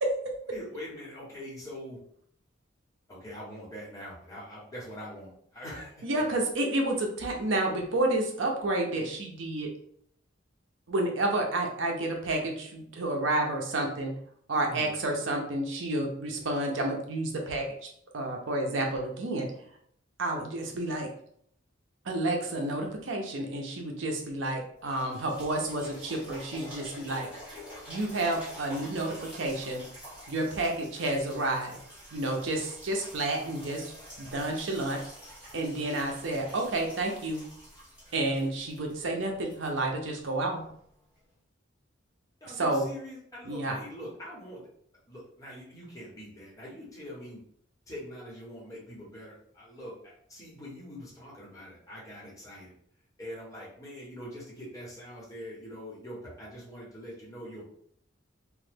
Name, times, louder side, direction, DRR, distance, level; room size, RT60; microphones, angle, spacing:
voice 1, 0.0-0.3 6.0-9.7 10.9-14.1 14.5-17.7 18.1-19.5 20.2-21.1 22.1-27.3 27.9-29.8 30.3-31.8 32.1-33.9 34.2-35.0 35.5-37.4 38.1-40.6 42.6-42.8 43.5-43.7, right 2 dB, 70° right, 2 dB, 0.6 m, -30 dB
voice 2, 0.5-2.0 3.1-6.1 14.7-14.9 42.4-44.7 45.1-47.4 47.9-52.7 53.2-57.6, equal, 15° left, -5 dB, 0.9 m, -43 dB
sound 1, 24.8-40.5 41.2-41.3, equal, 5° right, 1.2 m, -47 dB
2.9 x 2.1 x 3.3 m, 0.65 s
head